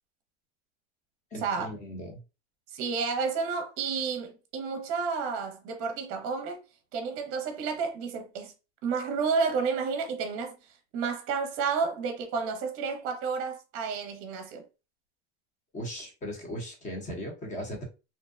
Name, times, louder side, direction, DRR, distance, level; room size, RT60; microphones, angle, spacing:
voice 1, 1.3-2.2 15.7-17.8, equal, 20° left, 0.8 m, -38 dB
voice 2, 2.7-6.6 6.9-8.5 8.8-10.6 10.9-14.6, right 5 dB, 40° right, 0.7 m, -31 dB
2.7 x 2.1 x 2.3 m
supercardioid pair, 140°, 35 cm